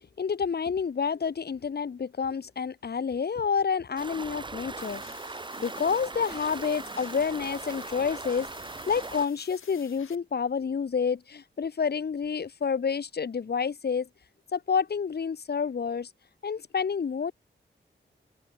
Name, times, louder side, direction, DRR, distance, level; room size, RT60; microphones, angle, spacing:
voice 1, 0.2-5.0 5.6-8.5 8.9-14.1 14.5-16.1 16.4-17.3, left 6 dB, 55° left, 1.0 m, -29 dB
Stream, 4.0-9.3, right 3 dB, 25° right, 0.8 m, -39 dB
sound 1, 4.8-10.2, left 7 dB, 90° left, 2.4 m, -52 dB
open air
wide cardioid pair, 115°, 20 cm